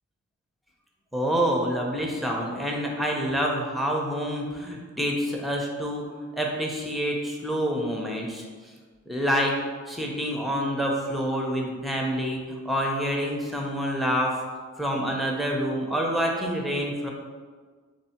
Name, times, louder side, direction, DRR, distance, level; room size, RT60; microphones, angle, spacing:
voice 1, 1.1-8.4 9.1-9.5 9.9-14.4 14.8-17.1, equal, ahead, -1 dB, 0.7 m, -27 dB
3.5 x 3.4 x 4.3 m, 1.5 s
wide cardioid pair, 100°, 31 cm